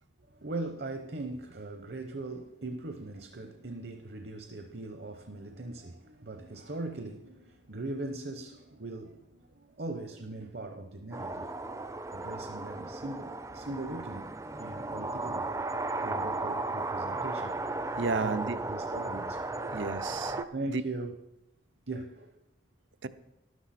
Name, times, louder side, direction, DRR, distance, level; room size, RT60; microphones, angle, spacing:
voice 1, 0.3-11.5 12.1-15.6 16.0-17.6 18.1-19.4 19.7-19.8 20.5-21.2 21.9-22.3, right 2 dB, 55° right, 0.8 m, -40 dB
sound 1, 11.1-20.4, right 2 dB, 15° right, 0.4 m, -35 dB
voice 2, 18.0-18.6 19.6-20.8 23.0-23.1, right 4 dB, 80° right, 0.7 m, -33 dB
12.5 x 12.5 x 4.3 m
head